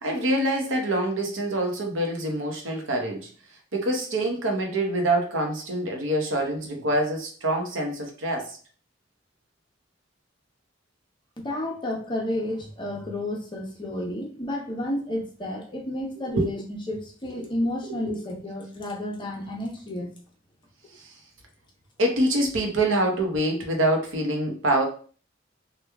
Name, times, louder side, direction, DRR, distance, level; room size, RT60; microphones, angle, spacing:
voice 1, 0.0-3.3 3.7-8.6 16.3-16.5 17.8-18.1 21.0-21.1 22.0-24.8, right 1 dB, 85° right, 2 dB, 0.8 m, -25 dB
voice 2, 11.4-20.1, left 1 dB, 25° left, 0 dB, 0.7 m, -31 dB
3.0 x 2.3 x 3.4 m, 0.41 s
head